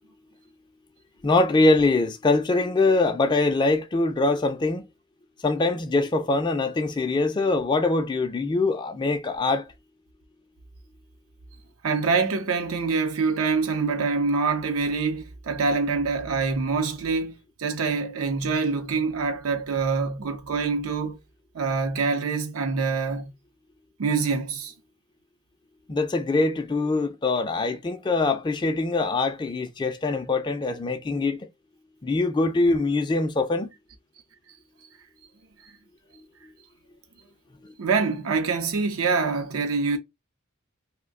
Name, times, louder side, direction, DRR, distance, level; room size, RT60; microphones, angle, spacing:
voice 1, 1.2-4.9 5.4-9.6 25.9-31.5 32.0-33.7, left 3 dB, 20° left, 0.3 m, -23 dB
voice 2, 11.8-21.2 21.5-23.3 24.0-24.7 35.6-35.7 37.8-40.0, right 4 dB, 85° right, 0.6 m, -25 dB
2.5 x 2.1 x 3.5 m
head